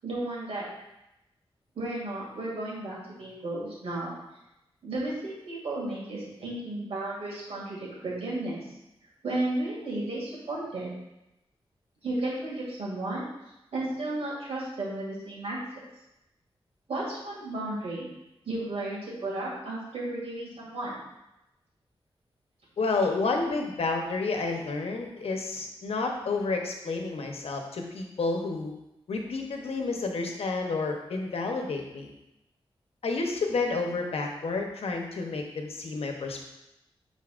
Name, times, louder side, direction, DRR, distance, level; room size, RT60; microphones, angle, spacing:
voice 1, 0.0-0.6 1.7-4.2 4.8-8.6 9.2-10.9 12.0-13.2 13.7-15.6 16.9-18.1 18.5-20.9, right 2 dB, 75° right, -5 dB, 2.3 m, -33 dB
voice 2, 22.8-28.7 29.1-32.1 33.0-36.4, left 3 dB, 75° left, 2 dB, 0.9 m, -30 dB
9.7 x 4.1 x 2.5 m, 0.90 s
cardioid pair, 75°, 10 cm